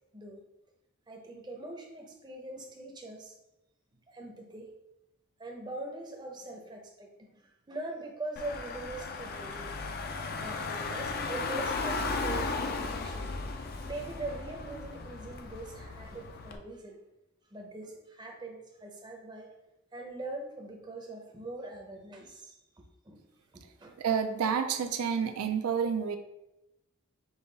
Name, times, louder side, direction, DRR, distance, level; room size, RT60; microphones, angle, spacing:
voice 1, 1.1-3.3 4.1-4.7 5.4-9.7 10.3-13.6 13.8-17.0 17.5-19.5 19.9-23.3 23.5-24.0, right 2 dB, 20° right, 1 dB, 0.6 m, -42 dB
Car / Engine, 8.4-16.6, left 3 dB, 45° left, 0.4 m, -36 dB
voice 2, 24.0-26.2, right 7 dB, 85° right, 7 dB, 0.4 m, -29 dB
5.4 x 2.3 x 3.9 m, 0.92 s
head